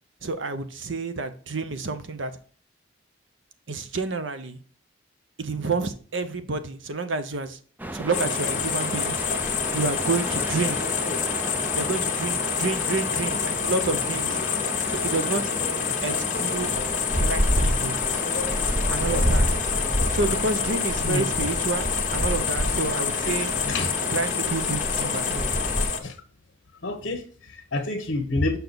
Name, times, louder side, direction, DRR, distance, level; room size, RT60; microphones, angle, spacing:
voice 1, 0.2-2.3 3.7-4.6 5.4-7.6 7.9-9.2 9.7-10.8 11.7-14.4 14.9-15.5 16.0-16.8 17.2-18.0 18.9-19.6 20.1-23.5 24.1-25.5, right 3 dB, 80° right, 0.9 m, -29 dB
sound 1, 7.8-25.9, equal, 10° right, 0.5 m, -30 dB
sound 2, 8.1-26.0, left 7 dB, 40° left, 1.1 m, -27 dB
voice 2, 26.8-28.6, left 2 dB, 60° left, 1.0 m, -28 dB
6.9 x 5.4 x 4.0 m
head